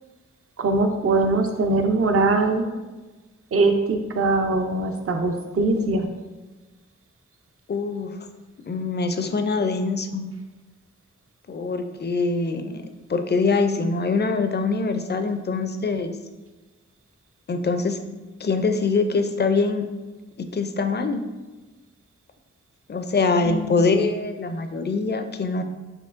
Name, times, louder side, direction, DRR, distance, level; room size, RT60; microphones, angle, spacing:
voice 1, 0.6-2.7 3.5-6.1 23.4-24.1, right 3 dB, 50° right, 5 dB, 0.5 m, -22 dB
voice 2, 7.7-8.1 8.7-10.3 11.5-16.1 17.5-18.0 18.4-19.9 20.4-21.2 22.9-25.6, left 4 dB, 35° left, 7 dB, 0.4 m, -24 dB
4.4 x 3.2 x 2.4 m, 1.2 s
cardioid pair, 45°, 29 cm